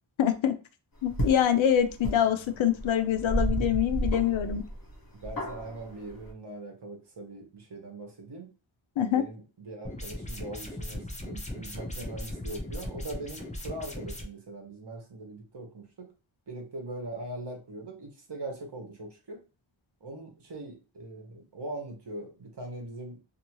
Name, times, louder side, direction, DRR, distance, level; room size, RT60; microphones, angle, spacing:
voice 1, 0.2-0.6 1.0-4.6 9.0-9.2, left 9 dB, 70° left, 8 dB, 0.5 m, -25 dB
sound 1, 1.0-6.3, right 1 dB, 45° left, 1.3 m, -33 dB
voice 2, 5.2-8.5 9.0-16.1 16.5-19.4 20.0-23.2, right 2 dB, 55° right, 2 dB, 1.0 m, -41 dB
sound 2, 9.8-14.2, left 1 dB, 15° left, 0.6 m, -38 dB
2.6 x 2.6 x 2.9 m, 0.33 s
wide cardioid pair, 80°, 49 cm